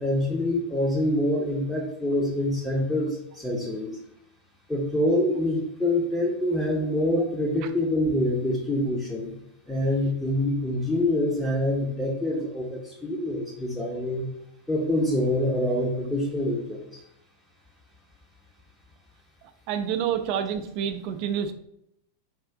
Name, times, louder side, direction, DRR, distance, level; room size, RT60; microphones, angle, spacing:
voice 1, 0.0-3.9 4.7-9.3 9.7-14.3 14.7-17.0, left 1 dB, 5° left, -4 dB, 0.6 m, -26 dB
voice 2, 19.7-21.5, right 8 dB, 45° right, 8 dB, 0.4 m, -28 dB
3.5 x 2.5 x 3.4 m, 0.75 s
figure-of-eight pair, 90°, 0 cm